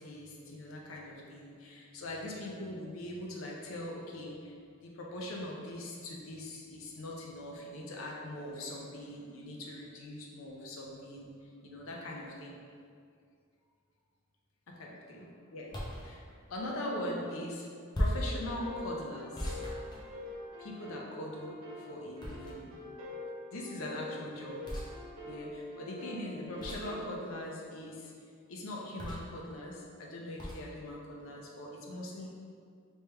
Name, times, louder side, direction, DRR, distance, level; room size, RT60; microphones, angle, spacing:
voice 1, 0.0-4.5 4.8-11.3 11.6-12.5 14.7-17.7 18.0-19.6 20.6-22.8 23.5-24.7 25.3-28.1 28.5-32.3, left 1 dB, 85° left, -2 dB, 0.6 m, -41 dB
sound 1, 15.7-16.1 17.9-18.4 19.4-20.5 22.2-22.8 24.6-24.9 26.6-27.0 29.0-29.4 30.4-30.6, equal, 20° left, 0.6 m, -36 dB
sound 2, 18.3-27.1, left 2 dB, 80° right, 0.6 m, -45 dB
3.2 x 3.1 x 3.3 m, 2.2 s
head